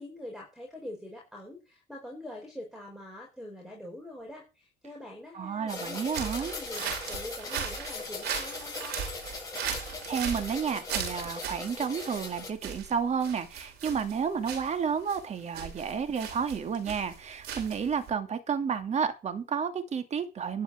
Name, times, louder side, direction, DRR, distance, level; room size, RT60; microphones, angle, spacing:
voice 1, 0.0-9.0, left 1 dB, ahead, 0 dB, 5.1 m, -44 dB
voice 2, 5.3-6.5 10.1-20.6, right 6 dB, 40° right, 8 dB, 2.4 m, -31 dB
sound 1, 5.7-12.5, left 3 dB, 20° left, 7.3 m, -40 dB
sound 2, 6.1-18.1, right 7 dB, 75° right, 5.6 m, -38 dB
12.0 x 6.3 x 7.3 m, 0.29 s
cardioid pair, 110°, 17 cm